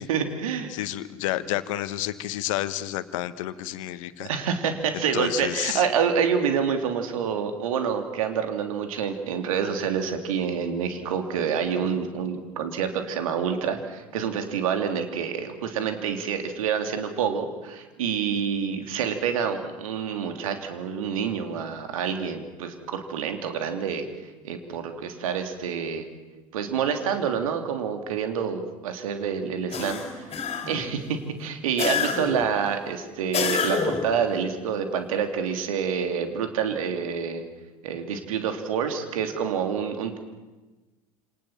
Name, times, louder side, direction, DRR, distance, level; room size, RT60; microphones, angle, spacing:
voice 1, 0.1-0.7 4.2-24.0 24.4-26.1 26.5-30.2 30.7-37.4 37.8-40.2, right 7 dB, 70° right, 6 dB, 3.2 m, -27 dB
voice 2, 0.7-4.3 4.9-5.8, left 14 dB, 65° left, 14 dB, 1.5 m, -30 dB
sound 1, 29.7-30.9 31.8-32.5 33.3-34.2, left 5 dB, 35° left, 4.6 m, -27 dB
28.0 x 28.0 x 7.5 m, 1.2 s
figure-of-eight pair, 65°, 18 cm